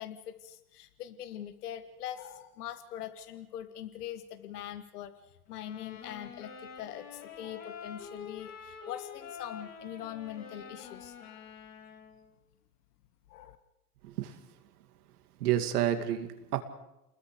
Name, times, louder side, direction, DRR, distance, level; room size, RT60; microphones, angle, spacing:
voice 1, 0.0-5.1 5.5-11.5 13.3-13.6, left 11 dB, 75° left, 11 dB, 1.6 m, -42 dB
sound 1, 5.5-12.3, left 6 dB, 35° left, 6.9 m, -47 dB
voice 2, 14.0-14.4 15.4-16.6, right 11 dB, 70° right, 8 dB, 2.5 m, -30 dB
29.0 x 21.0 x 5.1 m, 0.89 s
hypercardioid pair, 125°, 47 cm